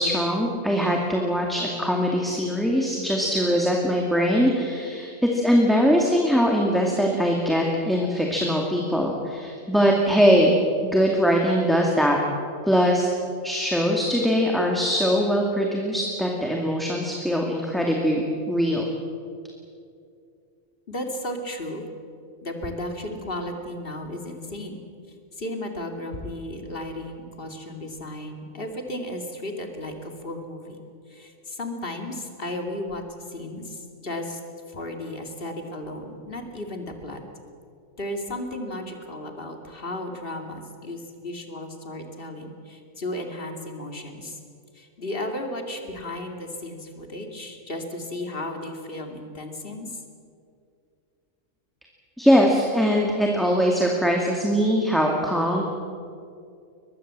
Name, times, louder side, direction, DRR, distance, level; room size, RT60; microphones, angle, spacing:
voice 1, 0.0-10.6 10.8-12.2 12.6-13.1 13.4-18.8 52.2-55.6, equal, ahead, -1 dB, 2.2 m, -22 dB
voice 2, 20.9-21.8 22.4-24.8 25.3-30.8 31.1-33.0 33.3-34.4 34.7-37.2 38.0-44.4 44.7-50.0, left 1 dB, 40° left, 4 dB, 2.6 m, -34 dB
23.0 x 21.5 x 7.6 m, 2.4 s
omnidirectional pair, 1.4 m